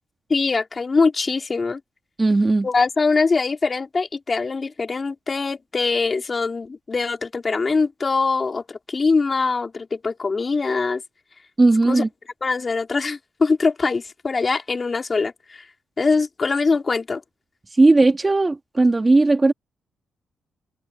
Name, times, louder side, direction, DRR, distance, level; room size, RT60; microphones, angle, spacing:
voice 1, 0.3-1.8 2.6-11.0 11.8-12.0 12.4-15.3 16.0-17.2, left 4 dB, 35° left, 3.4 m, -22 dB
voice 2, 2.2-2.7 11.6-12.1 17.8-19.5, right 2 dB, 25° right, 2.2 m, -16 dB
cardioid pair, 80°, 0 cm